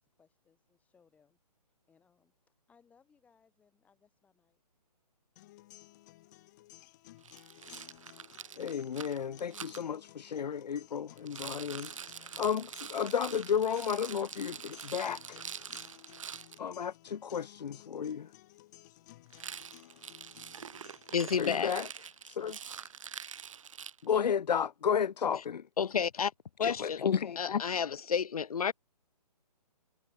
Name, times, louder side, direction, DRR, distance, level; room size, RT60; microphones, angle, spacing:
voice 1, 0.0-1.4 1.9-2.3 2.7-4.6, left 6 dB, 5° left, 6.5 m, -68 dB
sound 1, 5.4-21.4, left 17 dB, 25° left, 4.9 m, -57 dB
Rattle, 7.2-9.8 11.2-16.6 19.3-24.3, right 8 dB, 50° right, 2.9 m, -45 dB
voice 2, 8.6-15.4 16.6-18.3 21.4-21.9 22.3-22.6 24.0-25.6 26.6-27.6, left 7 dB, 80° left, 0.6 m, -33 dB
voice 3, 21.1-21.8 25.8-26.3 26.6-27.0 27.4-28.7, left 7 dB, 60° left, 1.5 m, -30 dB
hypercardioid pair, 160°, 21 cm